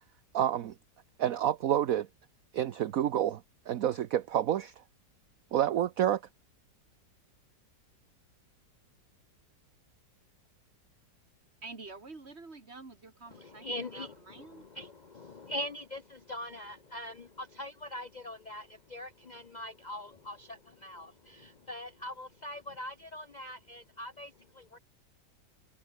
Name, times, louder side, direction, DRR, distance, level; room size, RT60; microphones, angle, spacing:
voice 1, 0.3-0.7 1.2-2.1 2.5-3.4 3.7-4.7 5.5-6.2, right 11 dB, 60° right, 1.1 m, -28 dB
voice 2, 11.6-14.7, right 3 dB, 35° right, 2.9 m, -48 dB
voice 3, 13.3-24.8, left 1 dB, 80° left, 0.4 m, -42 dB
omnidirectional pair, 1.9 m